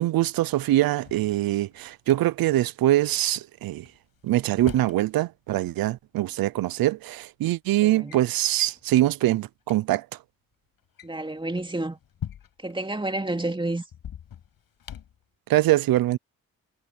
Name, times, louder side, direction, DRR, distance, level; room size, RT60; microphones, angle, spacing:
voice 1, 0.0-3.9 4.2-10.1 15.5-16.2, right 15 dB, 80° right, 0.6 m, -23 dB
Drawer open or close, 1.0-2.2 3.8-5.0 6.3-6.4 7.2-7.5 7.8-8.2 8.6-8.8 9.3-9.4 9.6-9.8 10.8-12.8 13.9-15.2, left 9 dB, 80° left, 7.1 m, -42 dB
voice 2, 7.8-8.2 11.0-12.0 12.6-13.8, right 2 dB, 15° right, 2.5 m, -30 dB
cardioid pair, 65°, 35 cm